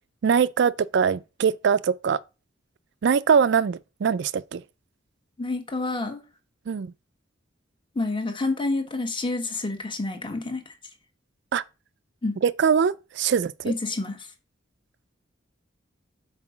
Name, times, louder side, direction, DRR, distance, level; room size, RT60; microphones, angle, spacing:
voice 1, 0.2-2.2 3.0-4.6 6.7-6.9 11.5-11.6 12.4-13.7, right 6 dB, 60° right, 0.4 m, -22 dB
voice 2, 5.4-6.2 7.9-10.6 12.2-12.4 13.6-14.2, left 2 dB, 25° left, 1.3 m, -28 dB
5.8 x 4.7 x 6.0 m
head